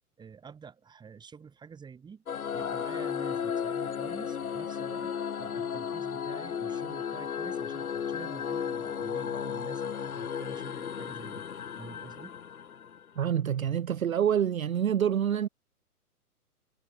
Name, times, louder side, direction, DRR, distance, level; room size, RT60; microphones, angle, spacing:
voice 1, 0.2-2.2 2.5-11.5 11.8-12.4, right 6 dB, 10° right, 5.5 m, -48 dB
sound 1, 2.3-13.2, left 7 dB, 70° left, 0.9 m, -34 dB
voice 2, 13.2-15.5, right 9 dB, 60° right, 0.7 m, -27 dB
figure-of-eight pair, 125°, 46 cm